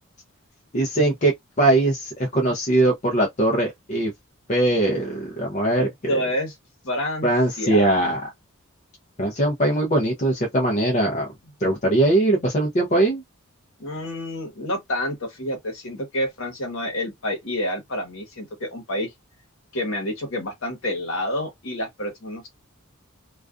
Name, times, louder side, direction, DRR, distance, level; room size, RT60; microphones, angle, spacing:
voice 1, 0.7-1.3 1.6-4.1 4.5-6.2 7.2-8.2 9.2-11.3 11.6-13.2, right 1 dB, 35° left, 0.5 m, -21 dB
voice 2, 5.7-6.5 6.8-7.3 7.6-7.9 13.8-19.1 19.7-22.5, left 1 dB, 60° left, 1.0 m, -28 dB
2.3 x 2.3 x 2.4 m
head